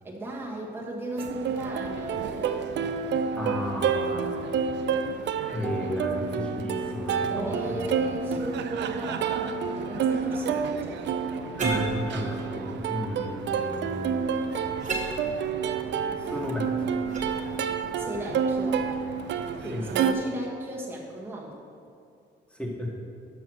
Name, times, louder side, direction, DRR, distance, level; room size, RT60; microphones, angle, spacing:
voice 1, 0.0-2.6 7.3-11.0 18.0-18.9 19.6-21.6, right 1 dB, 10° right, -4 dB, 1.2 m, -36 dB
Plucked string instrument, 1.2-20.1, right 6 dB, 65° right, 0.5 m, -29 dB
voice 2, 3.3-4.5 4.9-5.1 5.5-7.9 8.3-8.5 11.6-14.2 16.2-17.0 19.7-19.8 22.5-22.9, left 1 dB, 5° left, -2 dB, 1.5 m, -33 dB
sound 1, 5.5-10.2, left 1 dB, 40° left, 1.0 m, -40 dB
sound 2, 11.6-19.6, right 2 dB, 40° right, 1.4 m, -40 dB
6.2 x 5.5 x 6.2 m, 2.5 s
cardioid pair, 90°, 20 cm